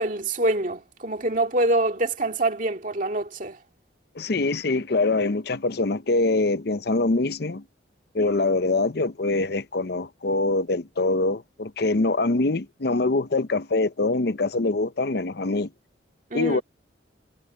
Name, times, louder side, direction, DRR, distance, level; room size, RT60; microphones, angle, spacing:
voice 1, 0.0-3.6 16.3-16.6, right 2 dB, 45° right, 2.2 m, -25 dB
voice 2, 4.1-7.6 8.1-15.7 16.3-16.6, left 2 dB, 55° left, 0.7 m, -24 dB
head